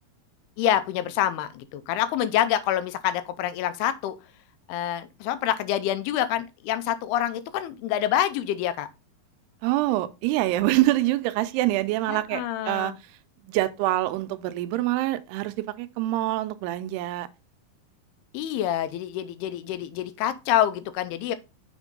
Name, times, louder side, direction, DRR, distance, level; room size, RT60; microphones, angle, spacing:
voice 1, 0.6-4.2 4.7-8.9 12.1-13.0 18.3-21.4, left 11 dB, 85° left, 2.6 m, -26 dB
voice 2, 9.6-13.1 13.4-17.3, right 16 dB, 90° right, 2.6 m, -25 dB
6.7 x 3.6 x 5.1 m
omnidirectional pair, 4.6 m